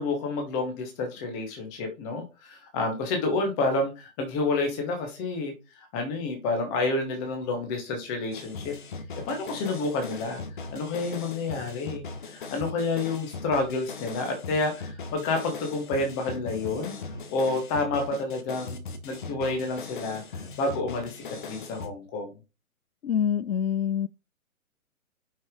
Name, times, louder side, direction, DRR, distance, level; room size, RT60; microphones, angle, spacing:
voice 1, 0.0-5.5 5.9-8.7 9.3-10.4 10.7-17.0 17.3-18.8 19.0-20.2 20.6-22.3, left 3 dB, 10° left, 0.8 m, -29 dB
sound 1, 8.3-21.9, left 4 dB, 35° left, 1.1 m, -39 dB
voice 2, 23.0-24.1, left 8 dB, 80° left, 0.5 m, -26 dB
6.3 x 5.5 x 3.7 m
figure-of-eight pair, 135°, 44 cm